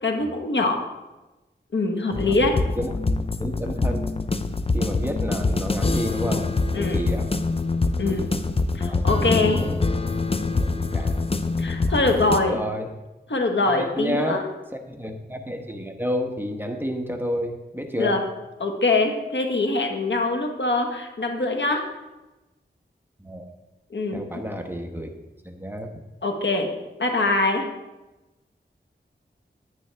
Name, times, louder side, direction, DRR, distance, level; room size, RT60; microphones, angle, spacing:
voice 1, 0.0-0.8 1.7-2.5 6.7-7.0 8.0-8.3 8.7-9.6 11.6-12.6 13.3-14.4 18.0-18.2 18.6-21.8 23.9-24.4 26.2-26.7 27.0-27.6, left 2 dB, 70° left, 3 dB, 1.3 m, -23 dB
sound 1, 2.1-12.4, left 3 dB, 30° left, 0.6 m, -25 dB
voice 2, 3.4-4.1 4.7-7.3 8.0-8.4 8.9-9.8 10.6-11.3 12.5-12.9 13.7-14.4 14.7-18.2 23.2-23.5 24.1-25.1 25.4-25.9, equal, 10° right, 4 dB, 1.1 m, -31 dB
10.0 x 9.5 x 3.4 m, 1.0 s
wide cardioid pair, 55°, 19 cm